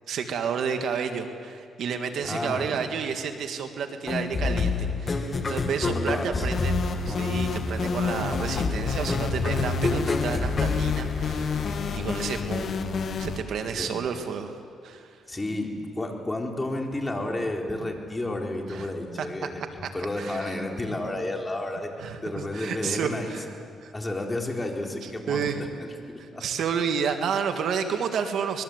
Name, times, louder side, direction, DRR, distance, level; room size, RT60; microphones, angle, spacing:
voice 1, 0.1-6.8 7.1-12.8 13.2-15.2 18.7-18.9 19.2-19.3 19.8-19.9 20.2-20.6 22.0-23.5 23.8-23.9 25.0-25.6 26.2-28.6, right 6 dB, 70° right, 6 dB, 1.9 m, -31 dB
voice 2, 2.2-2.7 5.9-6.5 13.7-13.9 15.3-19.7 19.9-21.9 22.2-23.3 23.9-25.5 25.8-26.4, left 1 dB, 15° left, 1 dB, 3.9 m, -31 dB
sound 1, 4.1-11.7, left 3 dB, 35° left, 2.2 m, -28 dB
sound 2, 6.5-13.4, left 5 dB, 55° left, 1.8 m, -29 dB
24.5 x 21.5 x 8.1 m, 2.3 s
cardioid pair, 90°, 0 cm